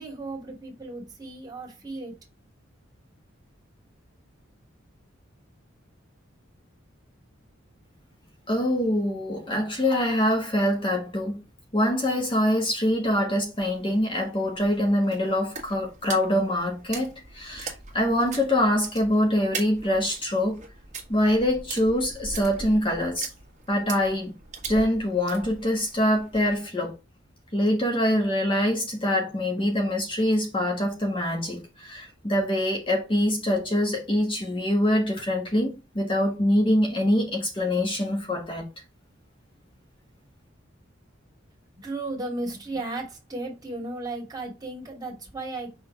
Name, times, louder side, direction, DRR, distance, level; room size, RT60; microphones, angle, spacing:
voice 1, 0.0-2.1 41.8-45.7, right 2 dB, 20° right, 2.5 m, -35 dB
voice 2, 8.5-11.4 11.7-20.6 21.1-23.3 23.7-24.3 24.7-26.9 27.5-38.7, left 1 dB, 25° left, 1.4 m, -24 dB
sound 1, 13.6-26.6, right 4 dB, 40° right, 1.6 m, -41 dB
5.9 x 3.8 x 4.6 m
head